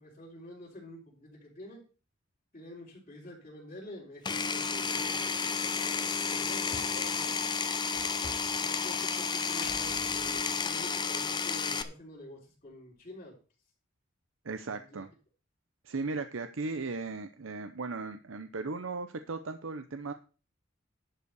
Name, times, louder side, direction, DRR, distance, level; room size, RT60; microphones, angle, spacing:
voice 1, 0.0-1.8 2.5-5.4 6.2-7.4 8.6-13.4 14.6-15.0, left 1 dB, 40° left, -9 dB, 4.3 m, -48 dB
Power tool, 4.2-11.8, left 5 dB, 20° left, 0.8 m, -31 dB
sound 1, 6.7-10.0, left 1 dB, 75° left, 2.8 m, -51 dB
sound 2, 9.6-11.9, left 4 dB, 55° left, 1.9 m, -50 dB
voice 2, 14.4-15.1 15.8-20.1, right 3 dB, 85° right, 9 dB, 0.7 m, -37 dB
11.0 x 5.4 x 6.8 m, 0.36 s
head